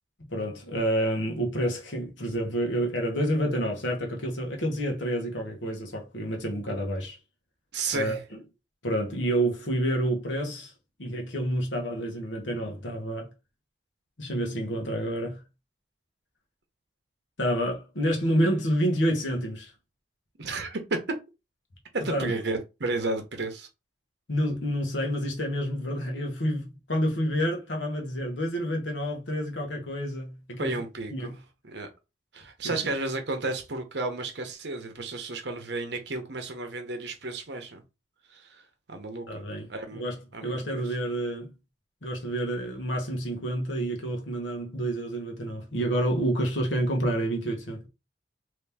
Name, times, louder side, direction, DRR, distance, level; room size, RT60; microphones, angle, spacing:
voice 1, 0.3-7.2 7.9-8.2 8.8-10.7 11.0-13.3 14.2-15.4 17.4-19.7 22.1-22.3 24.3-30.7 31.1-31.3 32.6-32.8 39.3-40.1 40.4-41.5 42.0-47.9, equal, 80° left, 1.2 m, -28 dB
voice 2, 7.7-8.2 20.4-20.8 21.9-23.7 30.6-31.3 31.6-31.9 32.3-37.8 38.3-38.6 38.9-40.0 40.3-40.9, right 3 dB, 65° right, 0.9 m, -33 dB
3.2 x 2.9 x 3.4 m
head